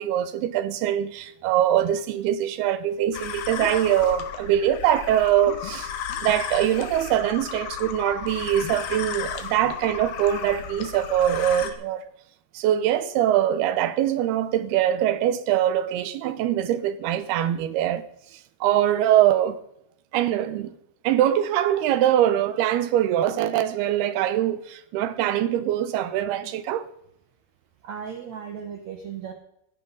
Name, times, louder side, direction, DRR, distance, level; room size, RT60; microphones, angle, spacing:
voice 1, 0.0-5.9 6.2-12.0 12.5-18.0 18.3-19.6 20.1-20.8 21.0-26.9, right 11 dB, 80° right, 2.9 m, -23 dB
sound 1, 3.1-11.7, left 8 dB, 75° left, 3.4 m, -34 dB
voice 2, 27.8-29.3, right 7 dB, 60° right, 1.9 m, -36 dB
16.5 x 16.5 x 4.0 m
omnidirectional pair, 4.7 m